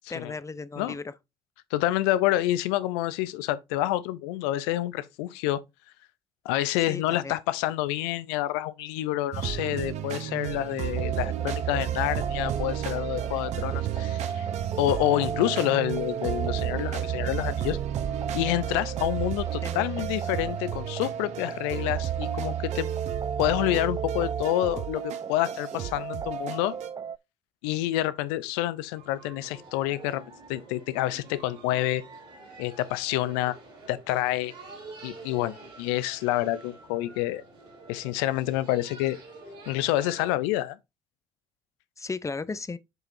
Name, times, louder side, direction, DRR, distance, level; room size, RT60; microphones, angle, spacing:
voice 1, 0.1-1.1 6.9-7.3 19.6-20.1 42.0-42.8, left 4 dB, 25° left, 0.7 m, -35 dB
voice 2, 1.7-5.6 6.4-14.5 14.8-17.8 18.3-22.9 23.4-26.7 27.6-30.2 30.5-32.0 32.6-33.6 33.9-34.5 35.0-37.4 37.9-39.2 39.7-40.8, left 15 dB, 80° left, 0.5 m, -28 dB
sound 1, 9.3-26.9, right 11 dB, 65° right, 0.8 m, -32 dB
sound 2, 11.0-27.2, right 6 dB, 30° right, 0.4 m, -36 dB
sound 3, 28.9-40.3, right 3 dB, 80° right, 3.8 m, -48 dB
7.8 x 4.9 x 2.6 m
hypercardioid pair, 50°, 13 cm